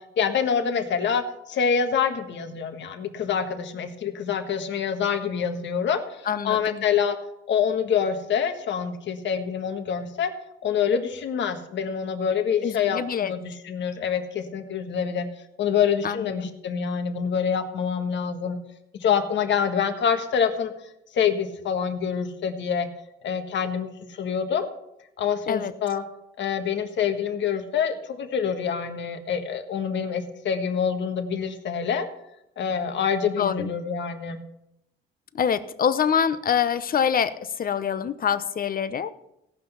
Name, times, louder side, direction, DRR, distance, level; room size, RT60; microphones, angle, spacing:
voice 1, 0.2-7.2 7.5-10.3 10.6-15.3 15.6-18.6 19.0-22.9 23.2-24.7 25.2-26.0 26.4-32.1 32.6-34.4, left 7 dB, 65° left, 7 dB, 1.5 m, -26 dB
voice 2, 6.3-6.9 12.6-13.3 16.0-16.4 25.5-25.7 33.4-33.7 35.3-39.1, left 7 dB, 45° left, 13 dB, 0.9 m, -25 dB
17.0 x 5.9 x 7.0 m, 0.83 s
cardioid pair, 90°, 20 cm